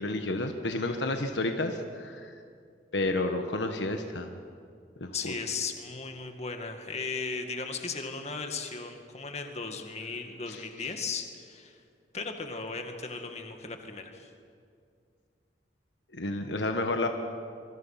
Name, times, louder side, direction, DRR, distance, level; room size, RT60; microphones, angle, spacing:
voice 1, 0.0-2.3 2.9-4.3 5.0-5.3 10.5-10.6 16.1-17.1, left 2 dB, 90° left, 5 dB, 1.4 m, -30 dB
voice 2, 5.1-11.8 12.1-14.3, left 4 dB, 40° left, 5 dB, 2.0 m, -36 dB
26.0 x 23.5 x 5.9 m, 2.3 s
head